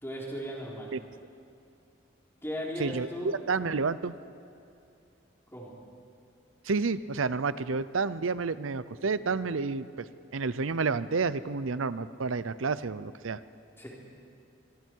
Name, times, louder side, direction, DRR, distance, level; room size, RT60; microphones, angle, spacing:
voice 1, 0.0-0.9 2.4-3.3 5.5-5.8 13.8-13.9, equal, 10° left, -4 dB, 3.8 m, -37 dB
voice 2, 2.8-4.1 6.6-10.1 10.3-13.4, right 4 dB, 85° right, 15 dB, 0.7 m, -30 dB
25.0 x 23.0 x 4.7 m, 2.6 s
head